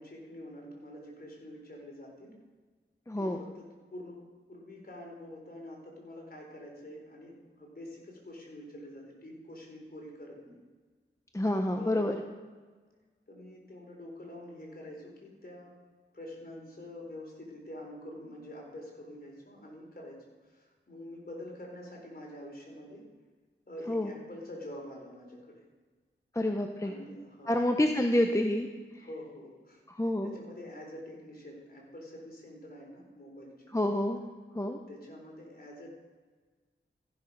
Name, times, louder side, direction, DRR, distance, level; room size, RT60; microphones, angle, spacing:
voice 1, 0.0-2.3 3.2-10.6 11.8-12.1 13.3-15.7 16.1-23.0 23.7-25.7 26.8-28.1 29.0-29.8 30.2-33.7 34.9-35.9, left 1 dB, 45° left, -1 dB, 4.0 m, -46 dB
voice 2, 3.1-3.4 11.3-12.2 23.9-24.1 26.3-26.9 27.5-28.7 28.9-29.1 29.9-30.3 33.7-34.2 34.5-34.8, left 1 dB, 15° left, 4 dB, 0.9 m, -28 dB
15.0 x 6.6 x 5.4 m, 1.4 s
cardioid pair, 45°, 21 cm